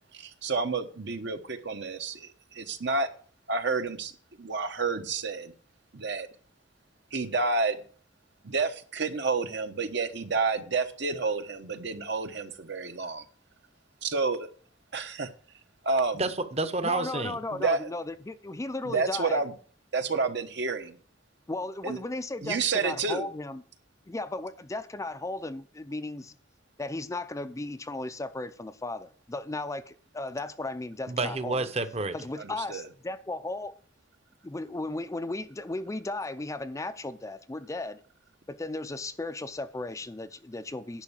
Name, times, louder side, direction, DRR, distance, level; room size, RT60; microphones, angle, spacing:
voice 1, 0.1-3.1 3.5-5.5 5.9-6.3 7.1-7.8 8.4-13.2 14.0-14.5 14.9-15.3 15.8-16.3 17.5-17.9 18.8-19.5 19.9-21.0 21.8-22.0 22.4-23.3 32.4-32.9, right 4 dB, 65° right, 7 dB, 1.1 m, -29 dB
voice 2, 16.2-17.4 31.1-32.2, right 3 dB, 35° right, 11 dB, 0.9 m, -29 dB
voice 3, 16.8-19.4 21.5-23.6 24.1-26.4 26.8-31.6 32.1-33.8 34.4-38.0 38.5-41.0, left 2 dB, 15° left, 10 dB, 0.5 m, -35 dB
10.5 x 5.5 x 7.4 m, 0.43 s
head